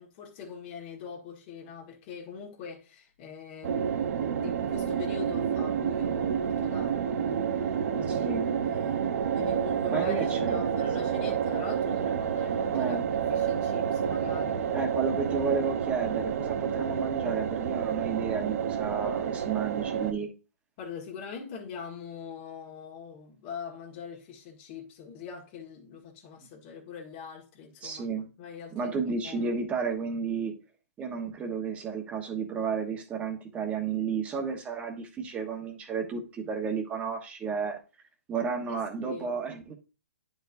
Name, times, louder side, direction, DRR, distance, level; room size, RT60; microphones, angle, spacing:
voice 1, 0.0-7.5 7.9-9.0 9.3-13.0 13.3-14.9 20.8-29.6 38.7-38.8 39.0-39.3, left 6 dB, 35° left, 1.7 m, -43 dB
sound 1, 3.6-20.1, right 8 dB, 55° right, 0.8 m, -29 dB
voice 2, 8.1-8.5 9.9-10.7 12.6-13.1 14.7-20.3 27.8-28.3 28.7-30.5 31.0-37.8 38.3-39.7, right 5 dB, 15° right, 1.2 m, -32 dB
10.0 x 4.6 x 2.6 m
hypercardioid pair, 150°, 9 cm